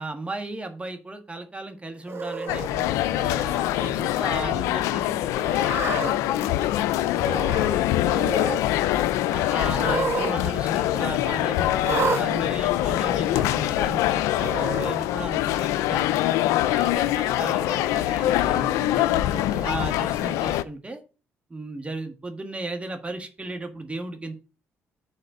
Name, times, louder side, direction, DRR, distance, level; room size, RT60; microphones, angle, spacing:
voice 1, 0.0-8.4 9.3-16.1 16.7-21.0 21.5-24.3, right 2 dB, 25° right, 7 dB, 1.5 m, -36 dB
Cat, 2.1-2.7 3.4-3.8 4.2-4.3 5.4-6.1 7.1-7.8 8.0-8.6 9.7-10.3 10.6-10.7 11.8-12.2 13.1-13.2 14.4-14.9, right 4 dB, 55° right, 1.7 m, -29 dB
sound 1, 2.5-20.6, left 14 dB, 90° left, 0.4 m, -24 dB
6.4 x 4.3 x 6.6 m, 0.34 s
supercardioid pair, 70°, 5 cm